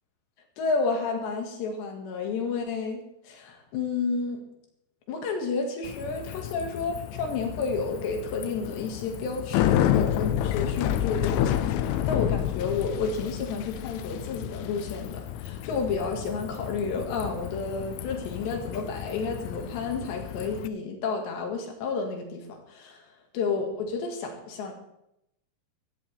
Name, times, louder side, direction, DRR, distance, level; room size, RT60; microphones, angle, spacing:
voice 1, 0.6-4.4 5.1-23.0 23.3-24.7, left 4 dB, 65° left, 2 dB, 4.0 m, -31 dB
Bicycle, 5.9-20.7, left 11 dB, 85° left, 3.2 m, -30 dB
16.5 x 14.0 x 3.5 m, 0.82 s
omnidirectional pair, 5.6 m